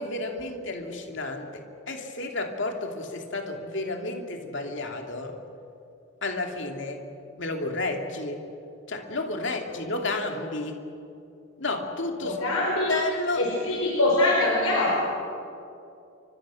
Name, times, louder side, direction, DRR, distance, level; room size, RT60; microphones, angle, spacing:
voice 1, 0.0-5.4 6.2-7.0 7.4-8.4 8.9-10.8 11.6-12.4 12.9-13.5, left 2 dB, 55° left, 3 dB, 2.8 m, -31 dB
voice 2, 12.2-12.9 13.4-15.0, left 2 dB, 90° left, -3 dB, 4.9 m, -23 dB
29.5 x 25.5 x 6.4 m, 2.6 s
head